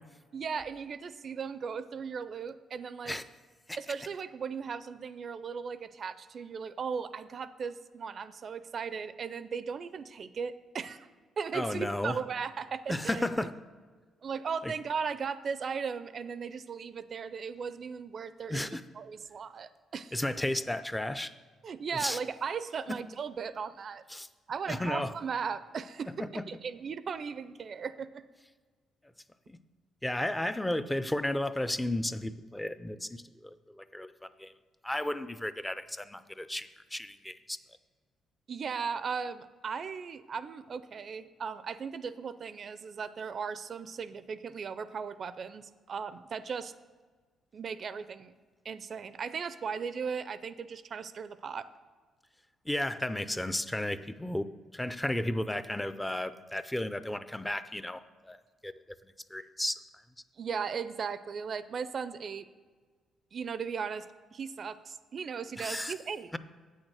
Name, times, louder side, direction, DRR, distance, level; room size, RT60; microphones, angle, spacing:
voice 1, 0.3-3.2 3.8-11.1 11.4-13.3 14.2-20.1 21.6-24.0 24.5-28.2 38.5-46.7 47.5-48.3 48.6-51.7 60.4-62.5 63.3-64.1 64.3-66.4, right 6 dB, 50° right, 14 dB, 0.4 m, -37 dB
voice 2, 11.5-12.2 12.9-13.5 14.6-14.7 18.5-18.8 20.1-21.3 21.9-22.2 22.9-23.0 24.1-24.3 24.7-25.1 26.2-26.4 29.5-29.6 30.0-34.5 34.8-37.6 52.7-54.5 54.7-58.4 58.6-58.7 59.3-59.8 65.6-65.9, left 1 dB, 10° left, 13 dB, 0.4 m, -33 dB
8.5 x 6.5 x 6.2 m, 1.5 s
cardioid pair, 90°, 0 cm